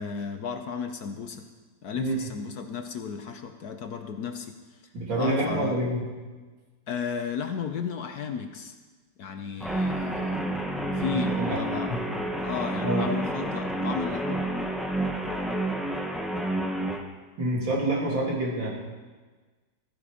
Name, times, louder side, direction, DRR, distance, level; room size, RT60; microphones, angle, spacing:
voice 1, 0.0-1.4 1.8-4.5 5.2-5.8 6.9-8.8 9.2-11.9 12.4-14.4, left 6 dB, 60° left, 6 dB, 1.2 m, -34 dB
voice 2, 4.9-6.0 11.1-11.6 11.9-12.0 12.8-13.1 17.4-18.7, right 1 dB, 75° right, -4 dB, 3.8 m, -27 dB
Guitar, 9.6-17.0, right 1 dB, ahead, 0.7 m, -29 dB
15.0 x 14.0 x 5.0 m, 1.4 s
omnidirectional pair, 2.1 m